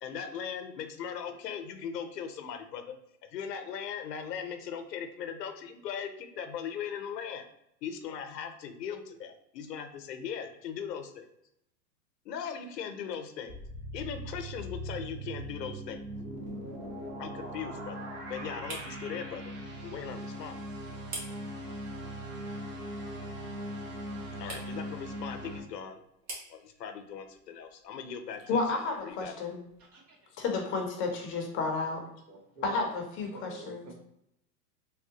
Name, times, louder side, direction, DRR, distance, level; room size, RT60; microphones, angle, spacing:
voice 1, 0.0-2.9 3.3-7.5 7.8-11.3 12.2-13.6 13.9-16.1 17.2-19.5 19.8-20.6 24.4-26.0 26.5-29.4, left 7 dB, 90° left, 7 dB, 0.7 m, -39 dB
sound 1, 13.5-25.6, right 1 dB, 25° right, 0.7 m, -40 dB
sound 2, 15.1-29.9, right 2 dB, 40° right, 1.4 m, -51 dB
voice 2, 28.5-29.6 30.4-32.0 32.6-33.8, left 3 dB, 25° left, 2 dB, 0.5 m, -31 dB
voice 3, 29.8-30.2 32.3-32.8 33.3-33.9, right 1 dB, 65° right, -2 dB, 1.4 m, -47 dB
3.4 x 2.1 x 2.7 m, 0.78 s
hypercardioid pair, 120°, 47 cm